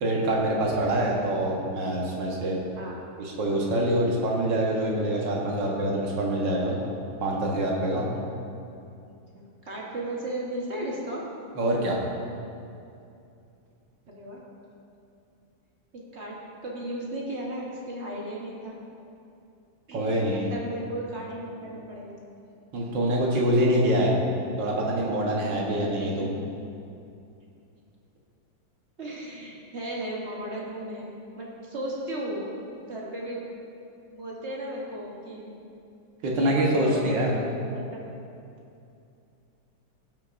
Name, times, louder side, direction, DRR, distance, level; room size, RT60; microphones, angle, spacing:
voice 1, 0.0-2.6 3.2-6.8 7.2-8.1 11.6-12.0 19.9-20.5 22.7-24.1 24.6-26.3 36.2-37.3, right 1 dB, 85° right, -2 dB, 1.9 m, -25 dB
voice 2, 0.5-0.9 2.7-3.0 9.3-11.2 14.1-14.4 15.9-18.8 19.9-22.2 25.8-26.4 29.0-33.5 34.1-35.6 36.3-38.0, right 1 dB, 45° right, -3 dB, 1.2 m, -36 dB
16.5 x 5.9 x 2.5 m, 2.6 s
omnidirectional pair, 1.9 m